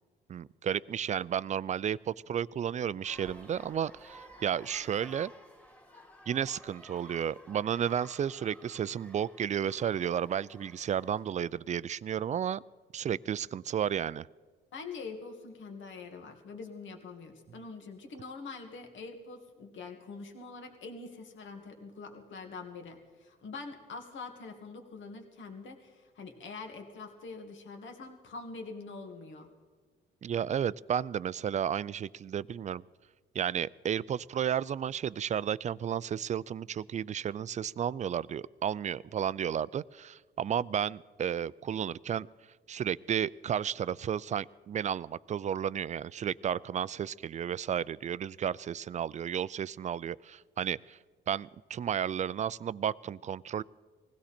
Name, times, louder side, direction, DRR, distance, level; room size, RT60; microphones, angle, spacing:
voice 1, 0.3-5.3 6.3-12.6 12.9-14.3 30.2-32.8 33.3-42.3 42.7-51.0 51.3-53.6, right 9 dB, 35° right, 21 dB, 0.4 m, -32 dB
sound 1, 3.0-11.3, equal, 5° left, 2.0 m, -53 dB
voice 2, 14.7-29.5, left 4 dB, 70° left, 4 dB, 2.0 m, -44 dB
20.5 x 16.0 x 4.3 m, 1.4 s
cardioid pair, 90°, 20 cm